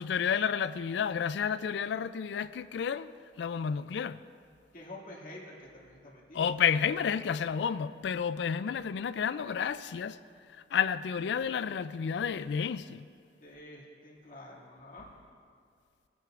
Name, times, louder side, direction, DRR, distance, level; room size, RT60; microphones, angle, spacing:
voice 1, 0.0-3.1 3.4-4.2 6.3-10.2 10.5-13.1, left 7 dB, 70° left, 0.3 m, -31 dB
voice 2, 4.7-6.5 13.4-15.1, left 1 dB, 45° left, 2.2 m, -48 dB
21.0 x 9.4 x 2.5 m
head